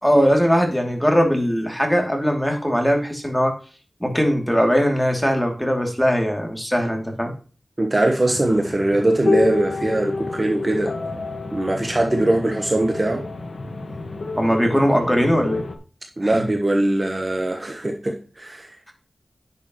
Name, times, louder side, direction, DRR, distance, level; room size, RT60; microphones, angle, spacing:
voice 1, 0.0-3.5 4.0-7.3 14.4-15.6 16.2-16.4, equal, 5° left, 2 dB, 2.7 m, -20 dB
voice 2, 7.8-10.9 11.5-13.2 16.2-18.7, right 1 dB, 35° right, 3 dB, 1.2 m, -21 dB
sound 1, 8.3-15.8, left 3 dB, 65° left, 1.5 m, -28 dB
10.5 x 6.8 x 3.1 m, 0.37 s
wide cardioid pair, 80°, 0 cm